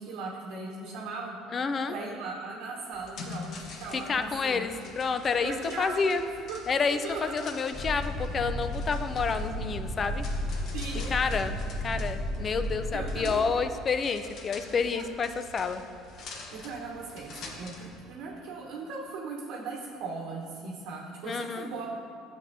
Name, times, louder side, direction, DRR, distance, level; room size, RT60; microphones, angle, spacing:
voice 1, 0.0-1.4 1.9-4.6 5.4-6.6 7.0-7.5 10.7-11.1 12.9-13.7 14.9-15.0 16.5-22.0, right 3 dB, 75° right, -4 dB, 1.0 m, -38 dB
voice 2, 1.5-2.0 3.9-6.2 6.7-10.2 11.1-15.8 21.2-21.7, left 5 dB, 35° left, 10 dB, 0.4 m, -29 dB
sound 1, 2.9-18.0, left 3 dB, 60° left, 0.9 m, -46 dB
sound 2, 7.7-13.2, left 1 dB, 10° right, 2.0 m, -33 dB
9.8 x 6.9 x 2.7 m, 2.4 s
supercardioid pair, 80°, 0 cm